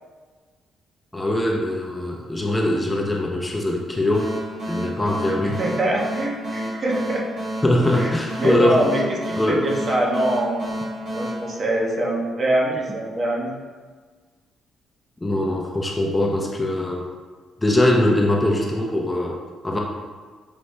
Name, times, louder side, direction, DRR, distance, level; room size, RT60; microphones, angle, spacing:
voice 1, 1.1-4.3 4.7-5.6 7.6-8.8 9.4-9.7 15.2-17.1 17.6-19.8, left 1 dB, 15° left, -1 dB, 0.4 m, -22 dB
sound 1, 4.1-12.5, equal, 60° right, 1.5 m, -31 dB
voice 2, 5.4-7.2 7.9-9.0 9.3-10.6 11.1-13.6, right 1 dB, 45° right, -2 dB, 0.8 m, -24 dB
5.2 x 2.0 x 3.2 m, 1.5 s
cardioid pair, 90°, 0 cm